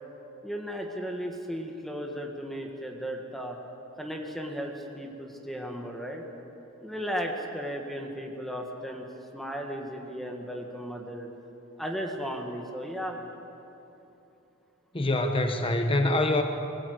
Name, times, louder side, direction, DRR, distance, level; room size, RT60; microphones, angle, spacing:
voice 1, 0.4-3.6 4.0-6.2 6.8-9.1 9.3-11.3 11.8-13.2, equal, ahead, 1 dB, 1.8 m, -35 dB
voice 2, 14.9-16.4, left 2 dB, 25° left, 5 dB, 1.1 m, -25 dB
25.5 x 20.5 x 7.9 m, 3.0 s
head